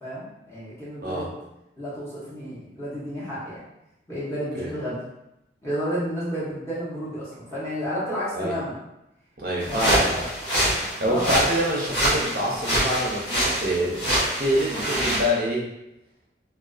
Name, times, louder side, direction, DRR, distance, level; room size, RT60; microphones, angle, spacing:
voice 1, 0.0-1.3 1.8-3.6 4.1-5.0 5.6-8.8 9.7-10.3 11.1-11.4, equal, 15° left, -10 dB, 0.7 m, -31 dB
voice 2, 9.4-10.3 11.0-14.0 14.4-15.7, equal, 55° right, -3 dB, 0.5 m, -26 dB
sound 1, 9.6-15.3, right 1 dB, 75° left, 0.9 m, -25 dB
2.3 x 2.2 x 2.3 m, 0.88 s
head